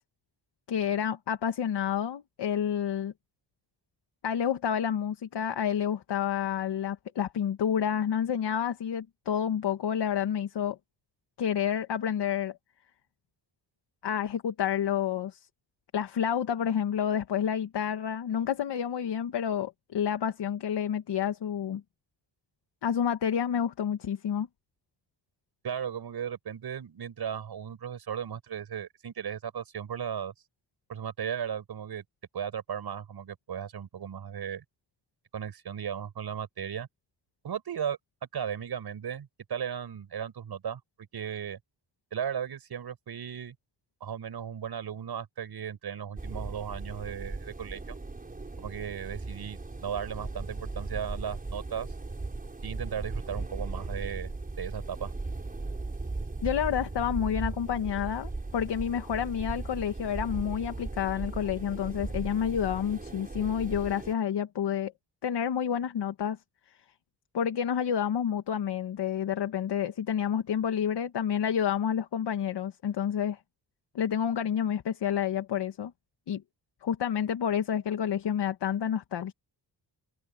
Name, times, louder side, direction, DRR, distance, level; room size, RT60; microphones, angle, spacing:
voice 1, 0.7-3.1 4.2-10.8 11.4-12.6 14.0-15.5 15.9-21.8 22.8-24.5 56.4-64.9 65.2-66.4 67.3-73.4 74.0-75.9 76.3-76.4 76.8-79.3, left 8 dB, 70° left, 1.7 m, -29 dB
voice 2, 25.6-30.3 30.9-32.0 32.3-34.6 35.3-36.9 37.4-38.0 38.3-40.8 41.1-41.6 42.1-43.6 44.0-47.8 48.6-51.9 52.6-55.1, right 8 dB, 60° right, 7.1 m, -36 dB
sound 1, 46.2-64.1, right 3 dB, 20° right, 5.5 m, -37 dB
wide cardioid pair, 150°, 42 cm